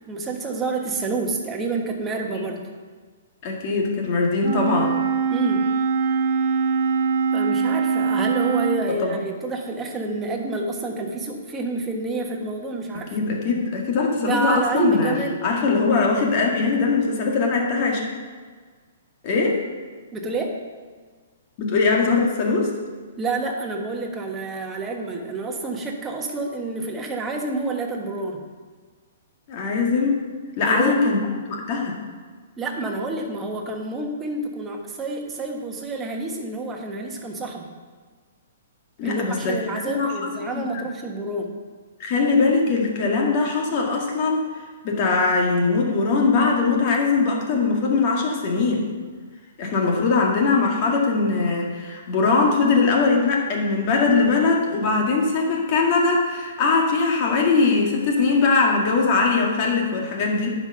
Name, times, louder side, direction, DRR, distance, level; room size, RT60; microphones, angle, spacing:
voice 1, 0.1-2.6 5.3-5.7 7.3-13.2 14.2-15.4 20.1-20.6 23.2-28.4 30.6-31.0 32.6-37.7 39.0-41.5, right 2 dB, 15° right, 1 dB, 1.3 m, -28 dB
voice 2, 3.4-4.9 8.9-9.1 13.1-15.1 15.4-18.0 19.2-19.6 21.6-22.7 29.5-30.2 30.6-31.2 31.5-32.0 39.0-39.6 39.9-40.8 42.0-44.4 44.8-48.9 49.6-60.5, left 4 dB, 40° left, 0 dB, 2.0 m, -21 dB
Wind instrument woodwind instrument, 4.4-8.9, right 5 dB, 50° right, 1.1 m, -22 dB
9.6 x 5.3 x 5.6 m, 1.5 s
hypercardioid pair, 130°, 0 cm